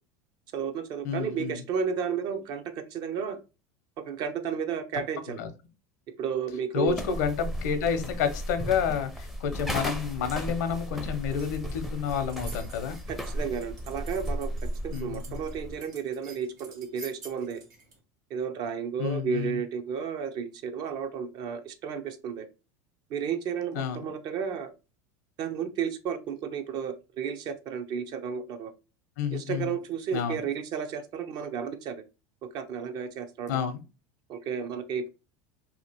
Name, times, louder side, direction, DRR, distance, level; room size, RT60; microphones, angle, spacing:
voice 1, 0.5-3.4 4.0-5.4 6.2-7.0 13.1-14.5 14.8-17.6 18.3-22.5 23.1-24.7 25.4-28.7 29.3-32.0 32.5-33.6 34.3-35.1, right 7 dB, 50° right, 8 dB, 0.5 m, -32 dB
voice 2, 1.0-1.6 5.3-5.5 6.7-13.0 14.9-15.4 19.0-19.6 23.7-24.1 29.2-29.8 30.1-30.4 33.5-33.8, left 7 dB, 80° left, 8 dB, 0.6 m, -30 dB
sound 1, 6.9-15.8, equal, ahead, 0.5 m, -35 dB
sound 2, 10.6-18.0, right 3 dB, 90° right, 1.0 m, -51 dB
2.8 x 2.4 x 2.8 m, 0.30 s
supercardioid pair, 110°, 9 cm